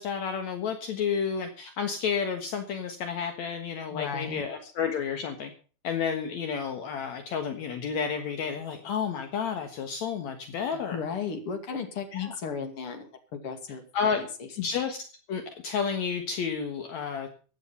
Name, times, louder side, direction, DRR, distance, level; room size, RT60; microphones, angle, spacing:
voice 1, 0.0-5.5 5.8-11.0 12.1-12.3 13.9-14.3 14.6-15.0 15.3-17.3, left 6 dB, 70° left, 6 dB, 2.7 m, -31 dB
voice 2, 3.9-4.7 10.7-13.8 14.1-14.5, left 6 dB, 50° left, 6 dB, 3.1 m, -35 dB
16.0 x 10.5 x 5.6 m, 0.39 s
omnidirectional pair, 3.4 m